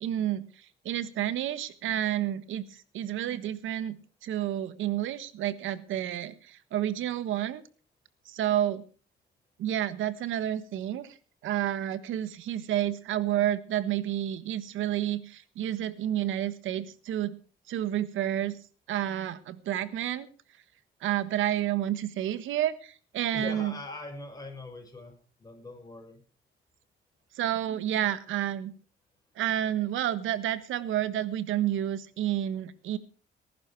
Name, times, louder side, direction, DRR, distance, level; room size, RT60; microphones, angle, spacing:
voice 1, 0.0-4.0 4.2-7.6 8.2-8.8 9.6-11.2 11.4-17.4 17.7-18.6 18.9-20.3 21.0-23.7 27.3-28.7 29.4-33.0, right 12 dB, 85° right, 14 dB, 1.4 m, -30 dB
voice 2, 23.3-26.2, left 2 dB, 20° left, 2 dB, 6.7 m, -42 dB
19.5 x 11.0 x 4.7 m, 0.40 s
cardioid pair, 90°, 20 cm